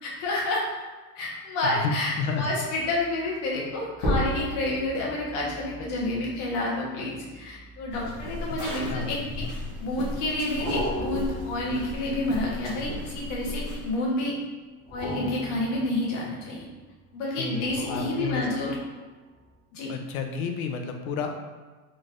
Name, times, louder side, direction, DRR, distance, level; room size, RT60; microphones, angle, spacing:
voice 1, 0.0-0.6 1.1-9.2 9.8-14.3 14.9-16.7 17.1-18.8 19.7-19.9, left 2 dB, 50° left, -3 dB, 1.1 m, -29 dB
voice 2, 1.6-2.5 8.5-8.6 8.9-9.2 17.4-18.7 19.9-21.3, left 5 dB, 65° left, 4 dB, 0.6 m, -31 dB
sound 1, 2.9-3.1 3.9-8.6 9.3-9.9 10.6-13.6 14.8-16.9 17.6-19.0 19.5-19.6, equal, 20° left, 0.4 m, -35 dB
sound 2, 7.9-13.9, left 1 dB, 20° right, 1.4 m, -36 dB
3.9 x 3.3 x 2.5 m, 1.3 s
supercardioid pair, 175°, 46 cm